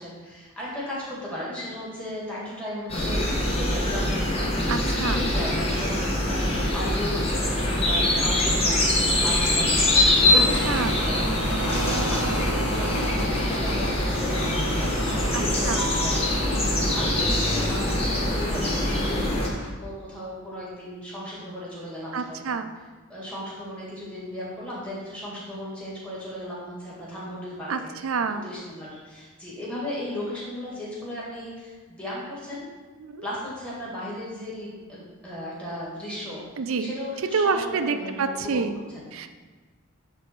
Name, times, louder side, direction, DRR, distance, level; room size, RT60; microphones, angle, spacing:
voice 1, 0.0-4.5 4.9-7.3 7.6-22.5 23.1-28.0 28.4-32.6 33.2-38.6 38.9-39.3, equal, 5° left, -7 dB, 2.1 m, -36 dB
sound 1, 2.9-19.5, left 1 dB, 25° left, 1.1 m, -24 dB
voice 2, 4.7-5.2 10.3-10.9 15.3-15.9 22.1-22.7 27.7-28.5 33.0-33.3 36.6-36.9 37.3-38.8 39.1-39.3, right 5 dB, 65° right, 9 dB, 0.5 m, -28 dB
sound 2, 4.9-19.7, right 1 dB, 85° left, 1.4 m, -35 dB
10.0 x 3.5 x 4.5 m, 1.3 s
head